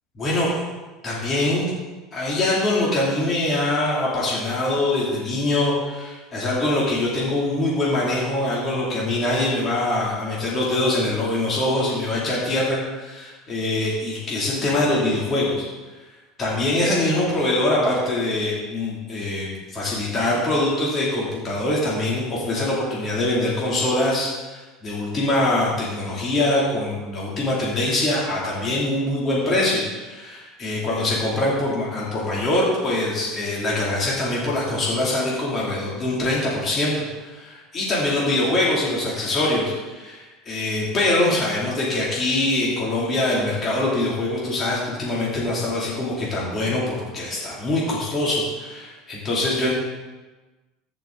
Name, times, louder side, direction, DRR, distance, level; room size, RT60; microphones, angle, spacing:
voice 1, 0.2-0.5 1.0-1.7 2.1-15.7 16.4-49.7, left 2 dB, 25° left, -6 dB, 2.7 m, -23 dB
14.5 x 6.0 x 3.8 m, 1.2 s
supercardioid pair, 140°, 0 cm